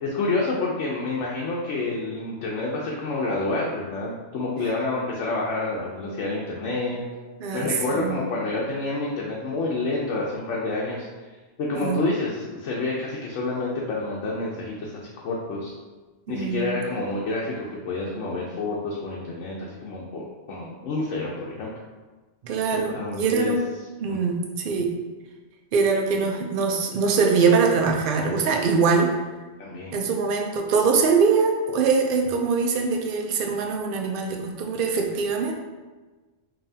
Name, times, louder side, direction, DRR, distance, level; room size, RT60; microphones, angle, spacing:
voice 1, 0.0-7.0 7.5-11.1 11.6-15.7 16.3-21.7 22.7-23.6 24.1-24.2 29.6-30.0, left 2 dB, 80° left, -3 dB, 1.0 m, -28 dB
voice 2, 7.4-8.2 11.8-12.0 16.3-16.7 22.4-23.6 24.0-24.9 25.7-29.1 29.9-35.5, right 5 dB, 55° right, 1 dB, 0.7 m, -23 dB
5.4 x 2.7 x 2.7 m, 1.3 s
omnidirectional pair, 1.2 m